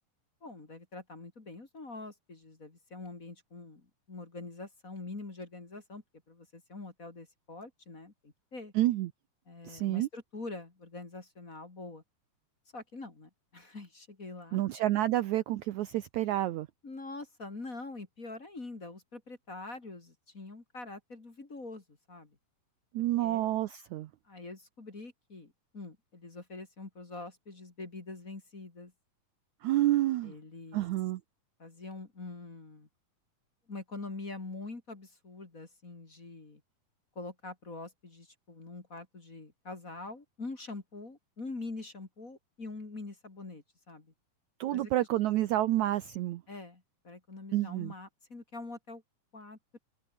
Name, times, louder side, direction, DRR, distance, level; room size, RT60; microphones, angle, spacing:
voice 1, 0.4-8.7 9.5-12.0 12.7-14.6 16.8-22.3 23.2-23.4 24.3-28.9 30.2-30.9 31.6-32.9 33.7-36.6 37.1-44.1 44.7-44.9 46.5-49.0 49.3-49.8, left 3 dB, 25° left, 2.9 m, -44 dB
voice 2, 8.8-9.1 9.7-10.1 14.5-16.7 22.9-24.1 29.6-30.3 30.7-31.2 44.6-46.4 47.5-47.9, right 14 dB, 75° right, 1.9 m, -29 dB
omnidirectional pair, 4.0 m